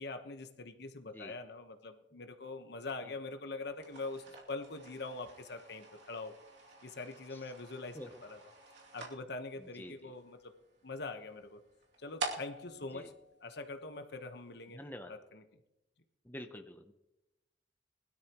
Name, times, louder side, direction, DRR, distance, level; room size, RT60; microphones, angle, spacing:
voice 1, 0.0-6.3 6.8-8.4 8.9-10.5 10.8-11.6 12.0-13.1 13.4-14.8 15.1-15.4, left 3 dB, 65° left, 7 dB, 1.2 m, -43 dB
sound 1, 3.7-14.1, right 2 dB, 70° right, 2.7 m, -48 dB
voice 2, 9.8-10.1 12.9-13.1 14.7-15.1 16.3-16.9, left 1 dB, 10° left, 6 dB, 0.7 m, -47 dB
21.0 x 12.5 x 3.0 m, 0.92 s
head